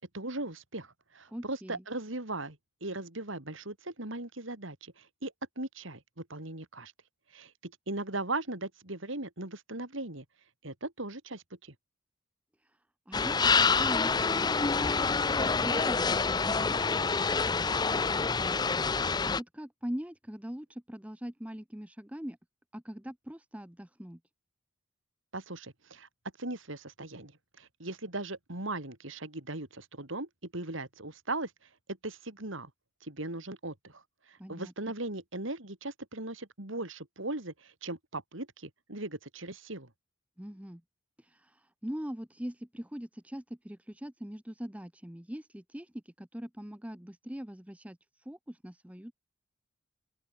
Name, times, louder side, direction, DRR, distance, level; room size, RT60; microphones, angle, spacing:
voice 1, 0.1-6.9 7.3-10.2 10.6-11.7 25.3-26.1 26.4-31.5 31.9-32.7 33.0-39.9, right 2 dB, 70° right, 3.4 m, -38 dB
voice 2, 1.3-1.8 13.1-14.5 15.4-18.8 19.3-22.4 22.7-24.2 34.4-34.7 40.4-40.8 41.2-49.1, equal, 5° right, 0.8 m, -42 dB
sound 1, 13.1-19.4, left 4 dB, 20° left, 0.5 m, -27 dB
open air
head